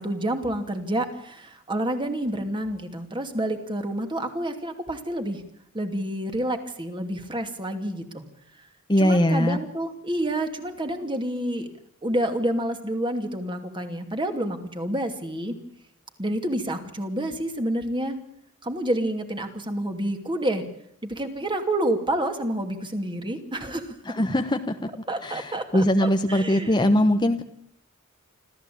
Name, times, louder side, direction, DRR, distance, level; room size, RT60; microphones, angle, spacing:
voice 1, 0.0-5.4 5.7-8.2 9.0-11.7 12.0-15.5 16.2-18.2 18.6-20.6 21.0-24.0 25.1-26.8, right 1 dB, 20° right, 6 dB, 2.7 m, -28 dB
voice 2, 8.9-9.6 24.1-24.8 25.2-27.4, left 1 dB, 20° left, 7 dB, 1.1 m, -21 dB
26.0 x 14.5 x 8.7 m, 0.71 s
head